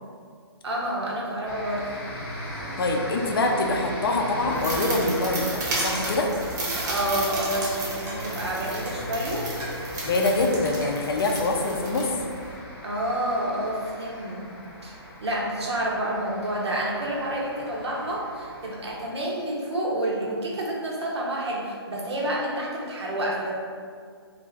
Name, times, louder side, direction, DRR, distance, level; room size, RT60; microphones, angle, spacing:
voice 1, 0.6-1.8 6.8-9.5 12.8-14.5 14.8-14.9 15.2-23.6, right 1 dB, 80° right, -3 dB, 0.8 m, -29 dB
sound 1, 1.4-19.0, left 1 dB, 25° left, 0.8 m, -38 dB
voice 2, 2.8-6.3 10.0-12.2, left 2 dB, 60° left, 2 dB, 0.4 m, -24 dB
sound 2, 4.5-12.6, right 2 dB, 40° right, 0.7 m, -33 dB
Coin (dropping), 4.8-5.1 5.9-6.3 6.8-7.0 7.5-7.7 8.1-8.3 8.9-9.1 9.6-10.4 10.8-11.7, right 2 dB, 10° right, 0.4 m, -41 dB
2.5 x 2.4 x 3.1 m, 2.1 s
hypercardioid pair, 145°, 14 cm